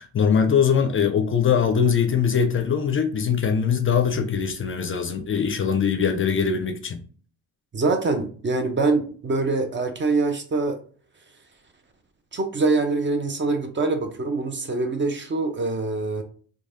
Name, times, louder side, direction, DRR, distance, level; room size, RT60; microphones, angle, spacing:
voice 1, 0.0-7.0, left 7 dB, 35° left, 0.4 m, -22 dB
voice 2, 7.7-10.8 12.3-16.2, right 3 dB, 35° right, 0.6 m, -24 dB
3.1 x 2.3 x 2.6 m
supercardioid pair, 75°, 35 cm